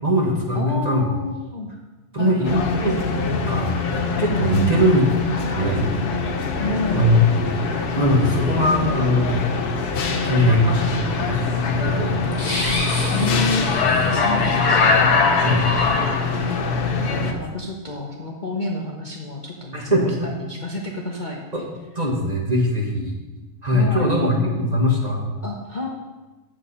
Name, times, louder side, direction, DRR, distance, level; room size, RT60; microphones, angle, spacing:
voice 1, 0.0-1.1 2.1-2.9 3.5-3.7 4.2-5.0 5.6-6.2 6.9-7.2 7.9-9.4 9.9-10.8 11.2-12.5 15.4-15.6 17.1-17.4 19.7-20.3 21.5-21.7 21.9-23.1 23.6-25.3, equal, 25° right, -1 dB, 1.4 m, -21 dB
voice 2, 0.5-1.7 2.2-2.7 4.5-5.1 6.6-7.1 10.3-11.2 13.1-15.2 16.2-21.4 23.7-24.2 25.4-25.9, left 1 dB, 35° left, -1 dB, 1.0 m, -29 dB
sound 1, 2.4-17.3, left 4 dB, 80° left, 1.5 m, -22 dB
sound 2, 12.3-14.3, left 1 dB, 60° left, 2.8 m, -29 dB
8.5 x 7.4 x 5.5 m, 1.2 s
omnidirectional pair, 1.6 m